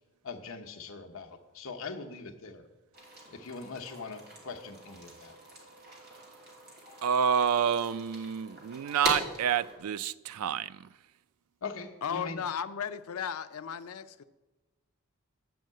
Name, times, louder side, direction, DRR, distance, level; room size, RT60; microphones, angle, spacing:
voice 1, 0.2-2.6 3.3-5.3 11.6-12.4, left 4 dB, 65° left, 0.9 m, -41 dB
sound 1, 2.9-9.8, right 1 dB, 45° right, 2.6 m, -41 dB
voice 2, 7.0-10.9, right 7 dB, 85° right, 0.4 m, -28 dB
voice 3, 12.0-14.2, left 7 dB, 85° left, 0.5 m, -35 dB
9.3 x 5.4 x 7.6 m
head